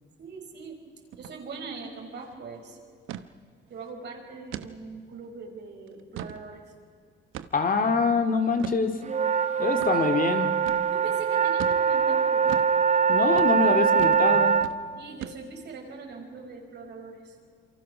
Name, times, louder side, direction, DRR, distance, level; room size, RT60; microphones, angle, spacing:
voice 1, 0.2-0.8 1.2-2.8 3.7-6.6 9.9-10.0 10.9-12.7 14.9-17.4, right 4 dB, 60° right, 2 dB, 5.2 m, -41 dB
sound 1, 1.1-1.4 1.7-1.8 2.1-2.4 3.1-3.3 3.8-3.9 4.5-4.7 5.2-5.3 5.9-6.4 7.3-7.7 8.6-8.8 9.8-9.9 10.7-10.9 11.6-11.8 12.5-12.7 13.3-13.5 14.0-14.3 14.6-14.8 15.2-15.7, right 11 dB, 85° right, 1.0 m, -38 dB
voice 2, 7.5-9.0 9.6-10.5 13.1-14.5, left 5 dB, 45° left, 7 dB, 2.3 m, -25 dB
sound 2, 9.1-14.7, right 7 dB, 35° right, 0.8 m, -23 dB
28.0 x 24.5 x 6.1 m, 2.1 s
cardioid pair, 90°, 20 cm